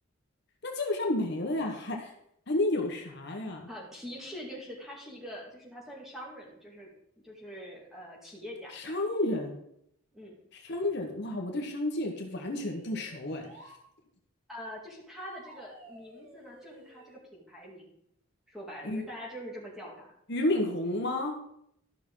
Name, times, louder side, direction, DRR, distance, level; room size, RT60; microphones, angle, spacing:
voice 1, 0.6-2.1 2.5-3.7 8.7-9.6 10.5-13.5 18.8-19.0 20.3-21.3, left 1 dB, 55° left, 2 dB, 1.2 m, -31 dB
voice 2, 3.7-6.9 7.2-9.0 10.1-10.3 14.5-17.9 18.5-20.1, equal, ahead, -3 dB, 2.1 m, -44 dB
sound 1, 12.0-13.8 15.2-17.2, right 1 dB, 75° right, 2.3 m, -53 dB
13.0 x 6.0 x 3.8 m, 0.74 s
head